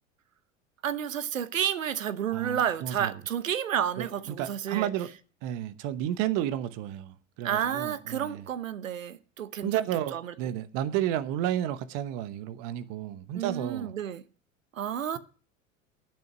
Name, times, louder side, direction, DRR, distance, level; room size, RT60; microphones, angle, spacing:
voice 1, 0.8-4.9 7.4-9.9 10.1-10.3 13.3-14.2 14.7-15.2, right 9 dB, 80° right, 1.0 m, -31 dB
voice 2, 2.3-3.1 4.0-5.1 5.4-8.4 9.6-13.9, right 11 dB, 50° right, 1.1 m, -32 dB
10.5 x 6.7 x 8.8 m
figure-of-eight pair, 80°, 39 cm